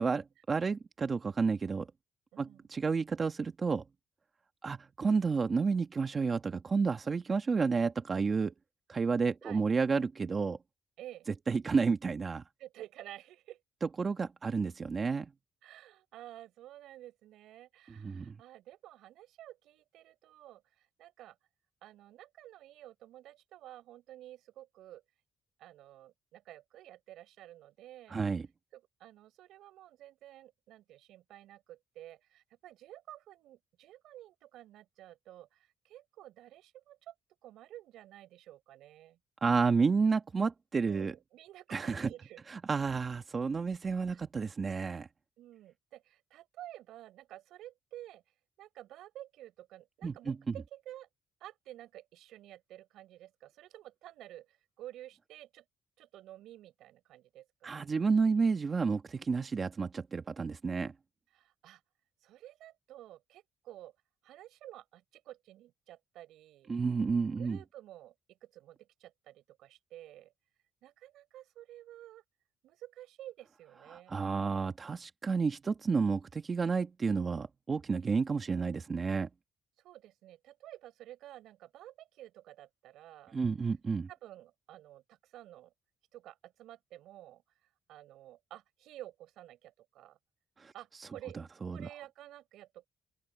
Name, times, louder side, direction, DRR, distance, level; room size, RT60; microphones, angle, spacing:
voice 1, 0.0-1.9 2.4-3.8 4.6-8.5 8.9-10.6 11.5-12.4 14.0-15.3 18.0-18.3 28.1-28.5 39.4-41.1 41.7-42.1 42.5-45.1 50.0-50.4 57.6-60.9 66.7-67.6 73.9-79.3 83.3-84.1 90.6-90.7 91.6-91.9, right 5 dB, 35° right, 1.4 m, -31 dB
voice 2, 2.3-2.7 9.4-9.6 11.0-11.3 12.6-13.6 15.6-21.4 21.8-25.0 25.6-28.2 28.7-37.1 37.4-39.2 40.9-42.4 44.1-44.2 45.4-48.2 48.6-51.1 51.4-55.6 56.0-57.9 61.3-61.8 62.2-64.0 64.2-66.8 67.4-70.3 70.8-72.2 72.6-74.2 79.8-83.4 84.1-85.7 86.1-90.2 90.7-92.9, right 13 dB, 85° right, 6.3 m, -52 dB
open air
cardioid pair, 90°, 0 cm